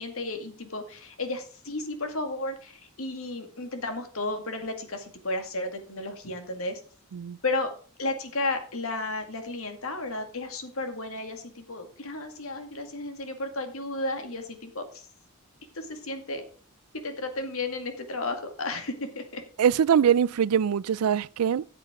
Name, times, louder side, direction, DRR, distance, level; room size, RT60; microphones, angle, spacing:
voice 1, 0.0-6.8 7.4-7.7 8.0-15.1 15.7-16.4 17.0-19.4, left 2 dB, 70° left, 2.1 m, -33 dB
voice 2, 19.6-21.7, right 8 dB, 90° right, 0.4 m, -23 dB
13.5 x 7.6 x 3.8 m
head